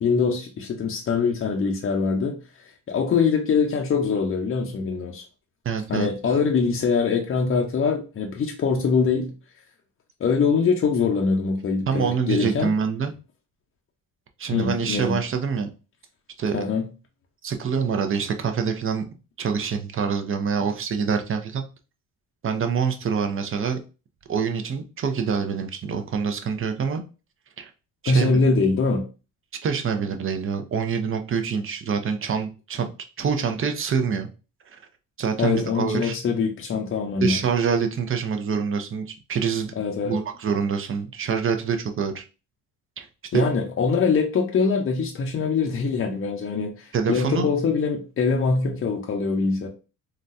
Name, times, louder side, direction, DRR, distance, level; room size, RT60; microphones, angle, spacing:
voice 1, 0.0-5.2 5.9-9.3 10.2-12.7 14.5-15.2 16.5-16.9 28.1-29.0 35.4-37.4 39.8-40.1 43.3-49.7, left 5 dB, 35° left, 1 dB, 0.6 m, -23 dB
voice 2, 5.6-6.1 11.9-13.1 14.4-15.7 16.4-16.6 17.4-19.0 19.4-21.6 22.4-23.8 24.3-27.0 27.6-27.7 28.0-28.4 29.6-32.9 33.2-34.3 34.7-34.8 35.2-36.2 37.2-39.7 40.0-42.2 43.0-43.1 43.3-43.5 46.9-47.5, right 6 dB, 35° right, 6 dB, 0.6 m, -25 dB
3.8 x 2.2 x 2.6 m, 0.32 s
cardioid pair, 100°, 36 cm